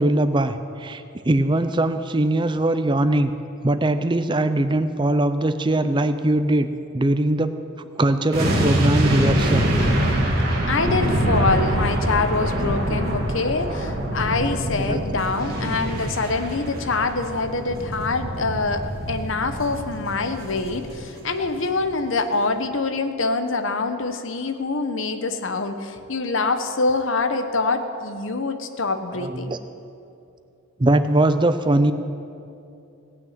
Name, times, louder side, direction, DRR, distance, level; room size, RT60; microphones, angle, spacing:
voice 1, 0.0-3.3 3.6-6.7 6.9-7.6 7.9-9.7 12.6-13.0 14.8-15.0 29.1-29.6 30.8-31.9, right 1 dB, 20° right, 10 dB, 0.5 m, -21 dB
sound 1, 8.3-21.5 21.7-21.9, right 1 dB, 45° right, 2.2 m, -25 dB
voice 2, 10.7-29.6, left 3 dB, 65° left, 8 dB, 0.9 m, -25 dB
18.0 x 6.2 x 8.8 m, 2.7 s
head